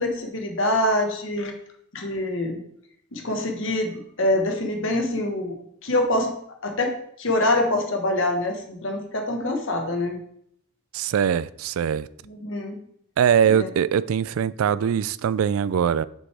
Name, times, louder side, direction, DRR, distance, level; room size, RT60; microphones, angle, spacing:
voice 1, 0.0-1.5 1.9-2.6 3.1-3.9 4.2-5.6 5.8-6.3 6.6-10.2 12.3-12.8 13.5-13.7, left 1 dB, 60° left, 1.4 m, -25 dB
voice 2, 10.9-12.1 13.2-16.1, right 8 dB, 70° right, 0.3 m, -22 dB
7.7 x 6.3 x 3.4 m
head